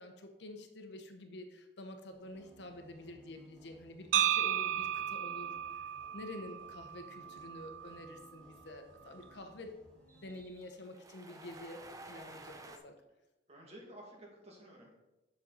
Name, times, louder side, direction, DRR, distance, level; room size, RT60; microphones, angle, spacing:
voice 1, 0.0-5.9 6.1-9.8 10.1-13.0, left 1 dB, 65° left, 5 dB, 0.9 m, -48 dB
sound 1, 2.1-10.4, right 1 dB, 5° left, 1.7 m, -63 dB
sound 2, 4.1-8.2, right 10 dB, 85° right, 0.4 m, -34 dB
sound 3, 5.6-12.8, right 2 dB, 20° right, 0.5 m, -55 dB
voice 2, 13.5-14.9, right 1 dB, 35° right, -2 dB, 1.9 m, -53 dB
7.5 x 6.3 x 4.0 m, 1.0 s
head